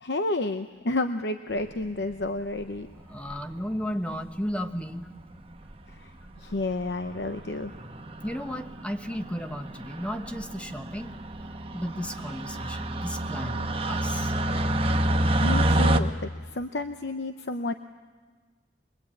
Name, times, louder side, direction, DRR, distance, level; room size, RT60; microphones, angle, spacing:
voice 1, 0.0-2.9 6.0-6.1 6.4-7.7 15.4-17.7, left 2 dB, 70° left, 8 dB, 0.8 m, -30 dB
sound 1, 1.8-2.3 3.3-3.7 4.6-4.7 4.8-4.9 5.2-5.3 5.6-5.9 6.4-6.6 6.9-16.0, right 1 dB, 35° right, 1.1 m, -28 dB
voice 2, 3.1-5.1 8.2-11.1 11.7-13.6 13.9-14.3, equal, 5° left, 7 dB, 1.0 m, -34 dB
23.0 x 22.0 x 8.6 m, 1.4 s
head